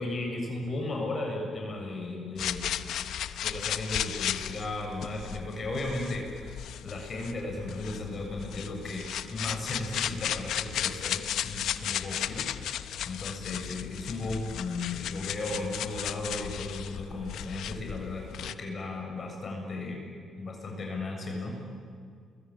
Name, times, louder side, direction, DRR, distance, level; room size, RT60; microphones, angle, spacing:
voice 1, 0.0-2.8 3.4-6.5 6.8-20.1 20.4-21.5, left 2 dB, 45° left, 1 dB, 7.1 m, -35 dB
sound 1, 2.4-18.5, left 10 dB, 75° left, 0.9 m, -35 dB
28.0 x 22.5 x 8.8 m, 2.1 s
cardioid pair, 90°, 0 cm